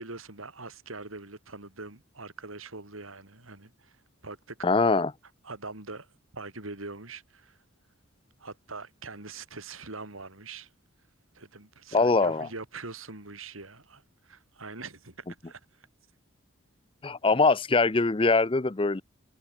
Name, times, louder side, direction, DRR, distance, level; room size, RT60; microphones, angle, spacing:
voice 1, 0.0-4.0 4.2-4.7 5.4-6.1 6.3-7.6 8.4-10.7 11.3-15.9, right 3 dB, 85° right, 4.0 m, -43 dB
voice 2, 4.6-5.1 11.9-12.5 17.0-19.0, left 3 dB, 25° left, 0.5 m, -23 dB
head